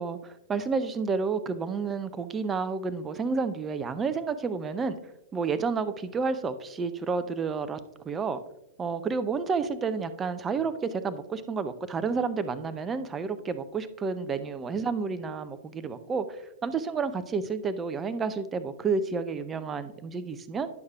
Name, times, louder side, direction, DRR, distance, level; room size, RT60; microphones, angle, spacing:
voice 1, 0.0-5.0 5.3-7.8 8.1-8.4 8.8-20.7, right 5 dB, 20° right, 12 dB, 0.5 m, -30 dB
10.5 x 6.3 x 2.3 m, 0.84 s
figure-of-eight pair, 100°, 0 cm